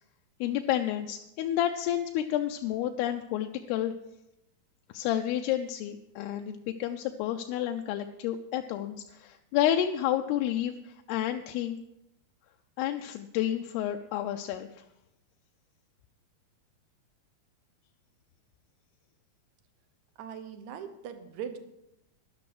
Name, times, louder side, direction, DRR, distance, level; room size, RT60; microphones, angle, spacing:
voice 1, 0.4-3.9 4.9-11.8 12.8-14.7, left 11 dB, 85° left, 5 dB, 2.6 m, -30 dB
voice 2, 20.2-21.6, right 8 dB, 70° right, 9 dB, 1.8 m, -40 dB
12.0 x 11.5 x 4.8 m, 0.88 s
omnidirectional pair, 4.6 m